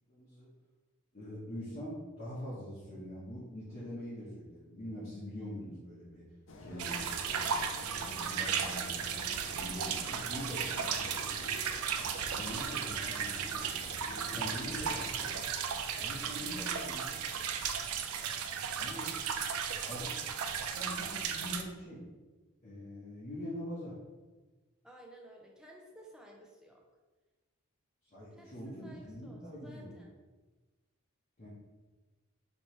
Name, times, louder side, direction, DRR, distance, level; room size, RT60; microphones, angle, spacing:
voice 1, 0.1-0.5 1.1-6.2 6.6-11.5 12.2-13.6 14.3-15.3 16.0-17.2 18.7-19.1 19.9-20.1 20.7-22.0 22.6-23.9 28.1-29.9 31.4-31.5, equal, 40° left, -10 dB, 0.9 m, -44 dB
sound 1, 6.5-15.4, left 2 dB, 55° left, 0.4 m, -48 dB
sound 2, 6.8-21.6, right 7 dB, 80° right, 0.4 m, -35 dB
voice 2, 15.9-17.0 24.8-26.8 28.3-30.1, right 1 dB, 5° right, -1 dB, 0.4 m, -55 dB
4.4 x 3.0 x 3.1 m, 1.2 s
head